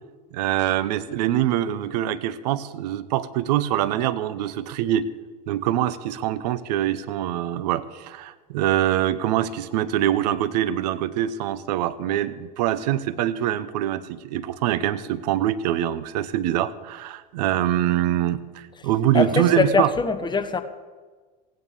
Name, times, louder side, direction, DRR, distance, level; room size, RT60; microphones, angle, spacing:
voice 1, 0.3-5.1 5.5-19.9, right 12 dB, 75° right, 15 dB, 0.9 m, -24 dB
voice 2, 19.1-20.6, left 4 dB, 20° left, 8 dB, 1.2 m, -22 dB
16.5 x 9.5 x 6.7 m, 1.4 s
hypercardioid pair, 90°, 21 cm